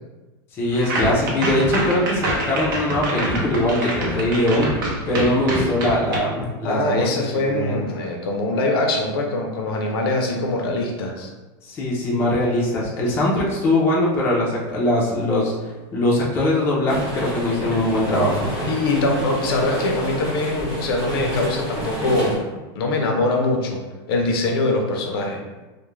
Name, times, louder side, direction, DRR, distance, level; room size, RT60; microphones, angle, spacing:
voice 1, 0.5-4.7 5.1-7.1 7.5-7.8 11.6-15.5 15.9-18.5, left 1 dB, 20° left, -5 dB, 0.4 m, -21 dB
sound 1, 0.7-6.2, right 1 dB, 60° right, 0.6 m, -26 dB
voice 2, 6.6-11.3 18.7-22.4 22.7-23.8 24.1-25.4, left 2 dB, 70° left, 2 dB, 0.5 m, -23 dB
sound 2, 16.9-22.3, right 1 dB, 10° right, 0.7 m, -29 dB
2.3 x 2.1 x 3.0 m, 1.2 s
supercardioid pair, 170°, 13 cm